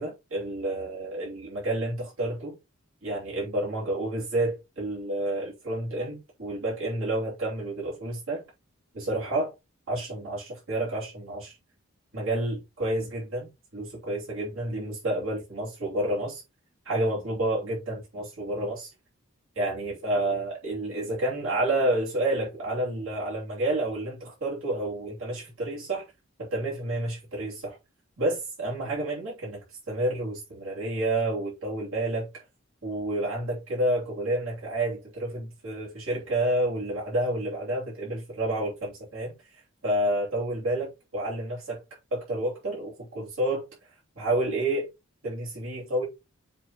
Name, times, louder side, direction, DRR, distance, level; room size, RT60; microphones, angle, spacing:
voice 1, 0.0-2.6 3.0-8.4 8.9-9.5 9.9-11.6 12.1-16.4 16.8-18.9 19.5-26.0 26.4-27.8 28.2-32.4 32.8-43.6 44.2-44.9 45.2-46.0, right 1 dB, 70° right, 3.2 m, -29 dB
7.6 x 3.4 x 4.0 m
head